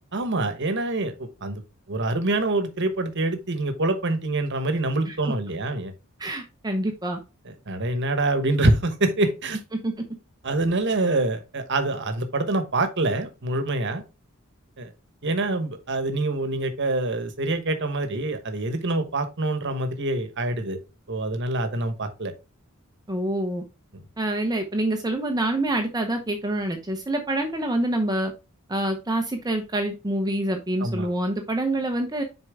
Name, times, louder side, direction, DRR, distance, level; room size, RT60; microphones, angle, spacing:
voice 1, 0.1-1.6 1.9-5.9 7.7-9.6 10.4-14.0 14.8-14.9 15.2-20.8 21.1-22.3 23.9-24.0 30.8-31.1, right 2 dB, 55° right, 1.2 m, -25 dB
voice 2, 6.2-7.2 9.8-9.9 23.1-23.6 24.2-28.3 28.7-32.2, right 1 dB, 20° right, 0.8 m, -26 dB
6.7 x 4.5 x 3.6 m
head